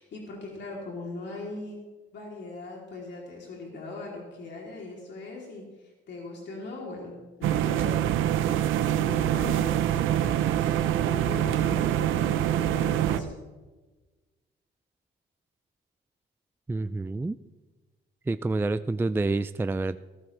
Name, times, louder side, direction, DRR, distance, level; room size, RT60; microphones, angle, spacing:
voice 1, 0.0-1.8 2.1-7.1 7.4-8.2 8.8-13.3, left 3 dB, 65° left, -2 dB, 3.4 m, -40 dB
sound 1, 7.4-13.2, right 11 dB, 85° right, 0.8 m, -25 dB
voice 2, 16.7-17.3 18.3-20.0, right 3 dB, 10° right, 12 dB, 0.4 m, -28 dB
18.5 x 15.0 x 3.4 m, 1.2 s
cardioid pair, 90°, 20 cm